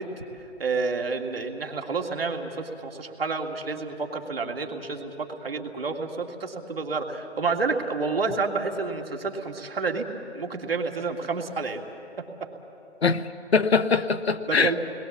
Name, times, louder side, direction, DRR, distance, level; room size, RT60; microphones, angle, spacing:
voice 1, 0.0-10.0 10.3-11.8 14.5-14.8, right 4 dB, 60° right, 3 dB, 2.3 m, -29 dB
voice 2, 13.0-14.8, left 5 dB, 65° left, 11 dB, 1.0 m, -23 dB
29.0 x 21.0 x 7.3 m, 3.0 s
figure-of-eight pair, 155°, 34 cm